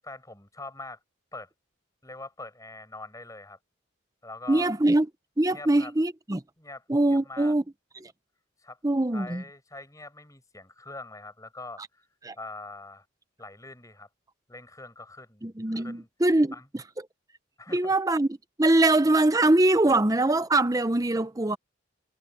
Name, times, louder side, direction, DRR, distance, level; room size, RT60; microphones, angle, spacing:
voice 1, 0.0-1.0 1.3-1.5 2.0-3.6 4.2-4.7 5.5-5.9 6.6-7.5 8.6-8.8 9.1-12.0 12.4-13.1 13.4-14.1 14.5-16.1 16.5-16.7 17.6-18.0, left 2 dB, 15° left, 7.0 m, -43 dB
voice 2, 4.5-5.1 5.4-6.4 6.9-7.6 8.0-8.1 8.8-9.4 12.2-12.4 15.4-16.5 17.7-18.3 18.6-21.6, right 2 dB, 15° right, 0.7 m, -23 dB
head